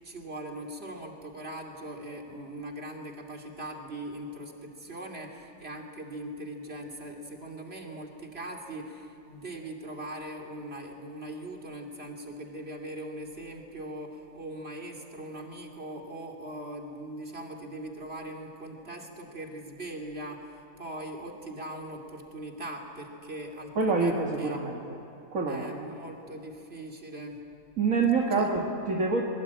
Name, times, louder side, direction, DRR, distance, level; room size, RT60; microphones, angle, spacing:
voice 1, 0.0-24.7 25.5-27.4 28.3-28.5, right 1 dB, 45° right, 1 dB, 3.1 m, -40 dB
voice 2, 23.8-24.8 25.3-25.7 27.8-29.2, right 4 dB, 70° right, -1 dB, 2.2 m, -26 dB
23.0 x 22.0 x 8.8 m, 2.8 s
omnidirectional pair, 1.4 m